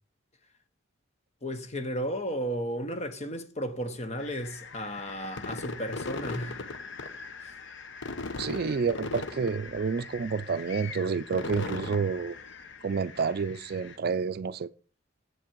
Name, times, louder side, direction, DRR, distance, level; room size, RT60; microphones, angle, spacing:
voice 1, 1.4-6.7, equal, 35° left, 1.0 m, -34 dB
sound 1, 4.2-14.0, left 3 dB, 65° left, 0.9 m, -40 dB
voice 2, 8.4-12.4 12.8-14.7, right 5 dB, 50° right, 0.4 m, -29 dB
8.0 x 7.5 x 4.6 m
head